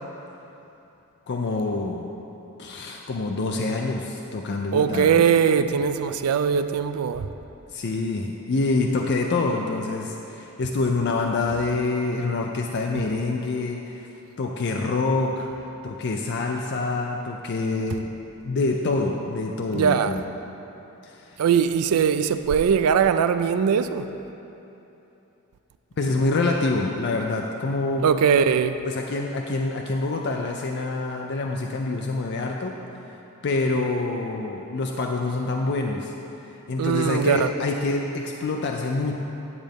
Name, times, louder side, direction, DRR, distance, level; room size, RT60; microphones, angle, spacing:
voice 1, 1.3-2.1 2.6-5.2 7.7-14.1 14.4-18.1 18.4-20.3 21.0-21.4 26.0-28.0 28.8-32.7 33.4-36.1 36.4-39.2, left 3 dB, 50° left, 1 dB, 0.4 m, -26 dB
voice 2, 4.7-7.3 19.7-20.1 21.4-24.1 28.0-28.8 36.8-37.5, right 7 dB, 80° right, 11 dB, 0.4 m, -21 dB
9.7 x 7.4 x 3.5 m, 3.0 s
head